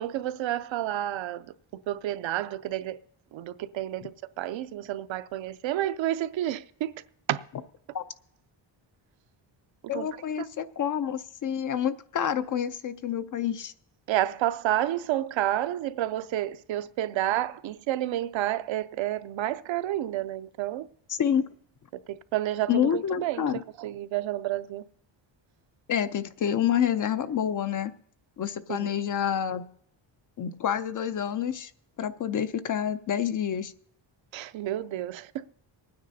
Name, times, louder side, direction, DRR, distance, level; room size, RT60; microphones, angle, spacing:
voice 1, 0.0-3.0 3.3-6.9 7.3-7.4 9.9-10.1 10.4-10.5 14.1-20.9 21.9-23.5 23.8-24.9 28.7-28.9 34.3-35.5, right 13 dB, 75° right, 0.6 m, -30 dB
voice 2, 9.9-13.7 21.1-21.4 22.7-23.6 25.9-27.9 28.4-29.7 30.4-31.7 32.0-33.7, left 9 dB, 45° left, 0.5 m, -28 dB
25.0 x 9.5 x 2.7 m
cardioid pair, 135°, 47 cm